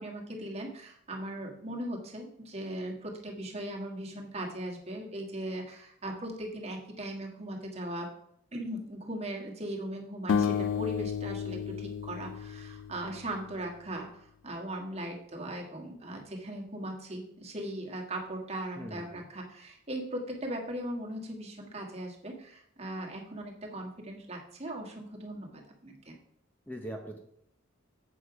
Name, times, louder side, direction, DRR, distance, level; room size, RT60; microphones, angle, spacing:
voice 1, 0.0-8.1 8.5-26.1, right 1 dB, 30° right, 1 dB, 1.5 m, -39 dB
sound 1, 10.3-13.5, left 7 dB, 70° left, 0.3 m, -32 dB
voice 2, 18.8-19.3 26.7-27.2, equal, 10° left, 1 dB, 0.8 m, -41 dB
8.3 x 6.6 x 4.8 m, 0.72 s
head